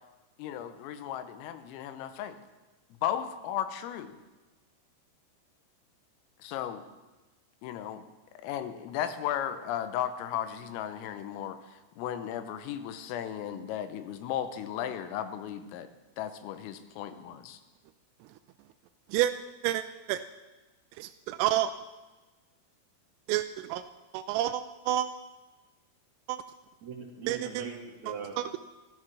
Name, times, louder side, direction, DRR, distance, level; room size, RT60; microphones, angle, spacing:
voice 1, 0.4-2.4 3.0-4.2 6.4-6.8 7.6-8.0 8.4-11.6 12.0-15.9 16.2-17.6, left 10 dB, 90° left, 10 dB, 3.6 m, -35 dB
voice 2, 19.6-20.2 21.0-21.7 23.3-23.8 24.1-25.1 26.3-26.4 27.3-27.4 28.1-28.5, right 13 dB, 90° right, 8 dB, 3.2 m, -29 dB
voice 3, 26.8-28.6, right 6 dB, 45° right, -1 dB, 2.9 m, -40 dB
14.5 x 12.5 x 6.1 m, 1.2 s
omnidirectional pair, 5.8 m